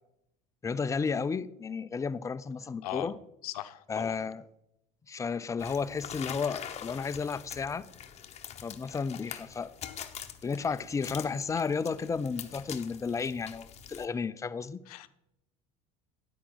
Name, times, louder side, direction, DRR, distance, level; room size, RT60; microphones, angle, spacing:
voice 1, 0.6-3.1 3.9-4.4 5.1-7.9 8.6-9.7 10.4-14.8, left 5 dB, 15° left, 0.4 m, -33 dB
voice 2, 2.8-3.2 3.4-4.2 14.9-15.1, left 14 dB, 85° left, 0.7 m, -39 dB
sound 1, 5.6-14.0, left 9 dB, 35° left, 0.9 m, -44 dB
10.0 x 8.4 x 3.9 m
supercardioid pair, 95°, 19 cm